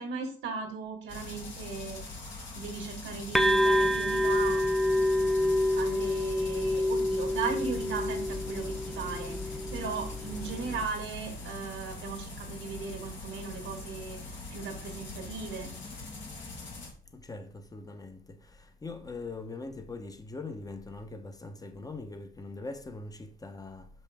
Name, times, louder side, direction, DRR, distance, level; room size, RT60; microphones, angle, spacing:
voice 1, 0.0-2.0 2.5-4.6 5.8-15.7, right 5 dB, 85° right, 1.6 m, -37 dB
sound 1, 1.1-16.9, left 2 dB, 70° left, 2.7 m, -43 dB
sound 2, 3.3-10.8, left 1 dB, ahead, 0.4 m, -28 dB
voice 2, 17.1-23.9, left 3 dB, 20° left, 0.9 m, -42 dB
5.9 x 5.4 x 3.5 m
cardioid pair, 90°, 20 cm